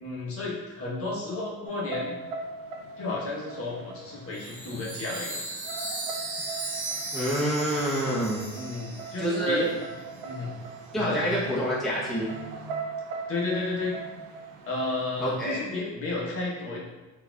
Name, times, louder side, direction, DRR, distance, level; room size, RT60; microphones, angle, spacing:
voice 1, 0.0-2.2 3.0-5.3 8.5-9.7 10.2-10.5 10.9-11.3 13.3-14.0 14.7-16.8, left 3 dB, 35° left, -4 dB, 1.0 m, -32 dB
sound 1, 1.7-15.5, right 4 dB, 60° right, 0.6 m, -41 dB
Chime, 4.3-9.9, right 2 dB, 85° right, 1.3 m, -37 dB
voice 2, 7.1-8.5 9.2-9.7 10.9-12.3 15.2-15.6, right 1 dB, ahead, -7 dB, 0.8 m, -27 dB
4.0 x 2.5 x 2.2 m, 1.2 s
supercardioid pair, 80°, 38 cm